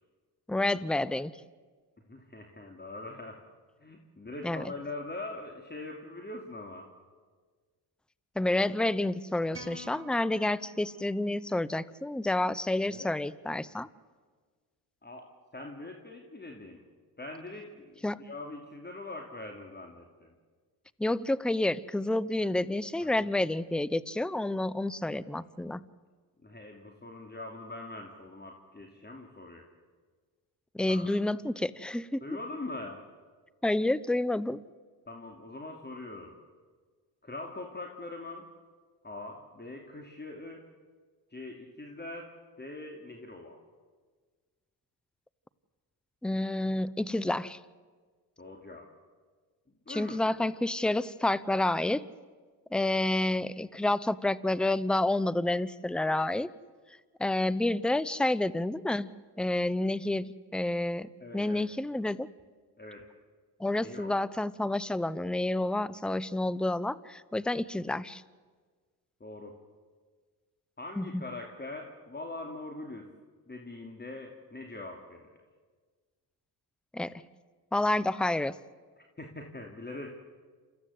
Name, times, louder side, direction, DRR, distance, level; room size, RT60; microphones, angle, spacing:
voice 1, 0.5-1.4 4.4-4.7 8.4-13.9 18.0-18.2 21.0-25.8 30.7-32.2 33.6-34.6 46.2-47.6 49.9-52.1 52.7-56.5 57.2-59.1 59.4-62.3 63.6-68.2 71.0-71.2 76.9-77.2 77.7-78.6, left 1 dB, ahead, 19 dB, 0.7 m, -29 dB
voice 2, 2.1-3.4 3.8-6.9 12.8-13.1 15.0-16.8 17.2-20.3 23.0-23.3 26.4-29.7 30.9-31.1 32.2-33.1 35.1-36.4 37.2-38.5 39.0-40.7 41.3-43.6 48.4-48.9 49.9-50.2 61.2-61.7 62.8-63.1 63.8-64.2 69.2-69.6 70.8-73.1 73.5-75.3 79.0-80.1, left 2 dB, 20° left, 2 dB, 2.7 m, -43 dB
sound 1, 9.5-11.9, equal, 25° right, 6.8 m, -50 dB
28.5 x 14.5 x 8.3 m, 1.5 s
supercardioid pair, 55°, 48 cm